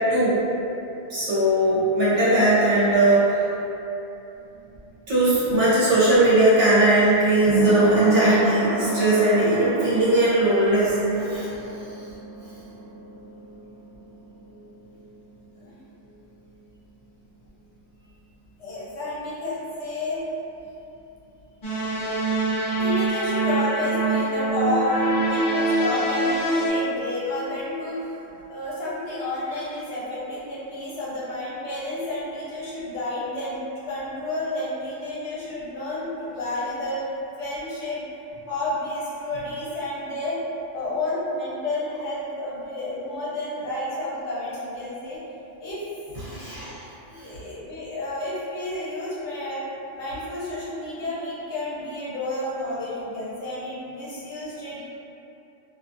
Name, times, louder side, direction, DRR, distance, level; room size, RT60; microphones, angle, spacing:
voice 1, 1.1-3.4 5.1-11.5 46.2-46.7, right 1 dB, 75° right, -11 dB, 1.2 m, -19 dB
sound 1, 4.4-15.9 16.2-16.3, right 4 dB, 40° right, 0.3 m, -30 dB
voice 2, 18.6-20.2 22.7-37.0 37.4-38.0 38.5-40.4 40.7-45.2 45.6-45.8 47.1-49.6 50.0-54.8, left 1 dB, 65° left, -8 dB, 1.0 m, -30 dB
sound 2, 21.6-26.7, right 2 dB, 50° left, 0.3 m, -24 dB
2.7 x 2.3 x 2.5 m, 3.0 s
omnidirectional pair, 1.3 m